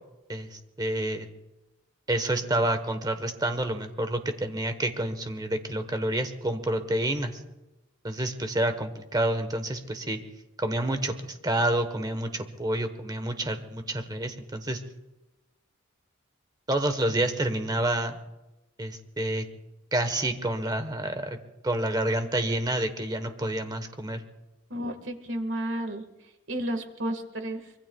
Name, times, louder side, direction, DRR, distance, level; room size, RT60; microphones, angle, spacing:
voice 1, 0.3-1.3 2.1-7.4 8.0-10.2 10.6-14.8 16.7-18.2 18.8-19.5 19.9-21.4 21.6-24.2, right 1 dB, 20° right, 8 dB, 1.1 m, -28 dB
voice 2, 24.7-27.7, right 1 dB, 65° right, 7 dB, 1.7 m, -32 dB
24.5 x 22.5 x 2.3 m, 0.98 s
head